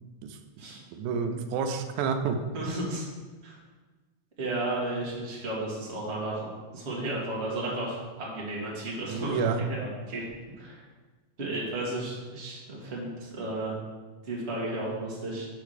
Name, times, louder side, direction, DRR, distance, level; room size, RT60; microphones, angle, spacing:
voice 1, 0.9-2.4 9.1-9.6, right 5 dB, 90° right, 7 dB, 2.1 m, -29 dB
voice 2, 2.5-3.0 3.4-3.6 4.4-10.3 10.6-10.8 11.4-13.7 14.2-15.5, right 2 dB, 30° right, -4 dB, 1.4 m, -33 dB
5.6 x 4.7 x 6.5 m, 1.3 s
omnidirectional pair, 3.4 m